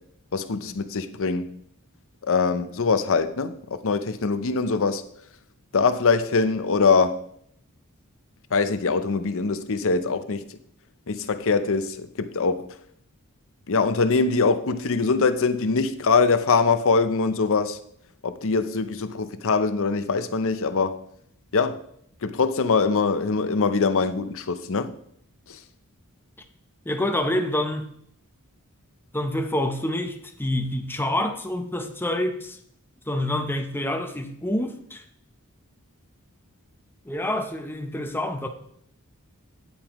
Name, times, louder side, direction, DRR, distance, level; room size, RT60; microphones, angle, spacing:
voice 1, 0.3-1.5 2.2-5.0 5.7-7.2 8.5-10.4 11.1-12.7 13.7-17.8 18.2-21.0 21.5-21.8 22.2-24.9 25.5-25.6, left 4 dB, 65° left, 0.7 m, -23 dB
voice 2, 26.9-27.9 29.1-32.6 33.1-35.0 37.1-38.5, left 1 dB, 10° left, 0.8 m, -27 dB
9.7 x 8.6 x 3.1 m
head